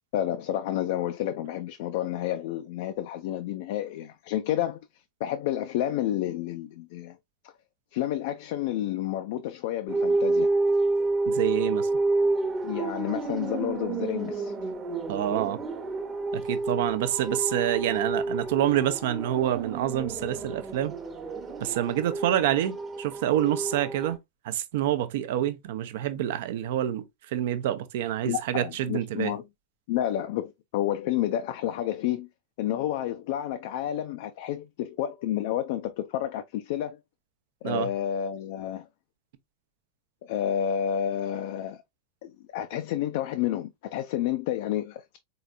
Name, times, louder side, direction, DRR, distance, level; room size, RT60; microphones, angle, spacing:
voice 1, 0.1-4.8 5.2-7.2 7.4-7.5 7.9-10.5 12.6-14.7 28.3-29.4 29.9-32.3 32.6-37.0 37.6-38.9 40.2-41.8 42.2-45.2, left 11 dB, 50° left, 0.4 m, -30 dB
sound 1, 9.9-24.2, right 3 dB, 20° right, 0.9 m, -29 dB
voice 2, 11.3-11.9 15.1-15.6 16.3-20.9 21.6-24.2 24.4-27.0 27.3-29.3 37.6-37.9, right 12 dB, 55° right, 0.6 m, -27 dB
4.1 x 3.8 x 2.3 m
figure-of-eight pair, 90°, 0 cm